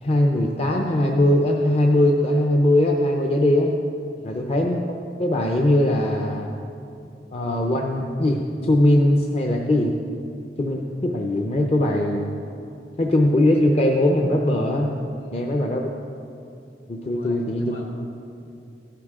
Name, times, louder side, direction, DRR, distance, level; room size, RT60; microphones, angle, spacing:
voice 1, 0.0-3.7 4.2-6.5 7.3-9.9 10.6-12.4 13.0-14.9 15.3-15.9 16.9-17.7, left 1 dB, 35° left, 1 dB, 0.6 m, -20 dB
voice 2, 4.1-4.5 7.0-7.1 15.1-15.6 17.0-17.8, left 1 dB, 65° left, -2 dB, 2.5 m, -44 dB
14.5 x 11.5 x 3.7 m, 2.6 s
head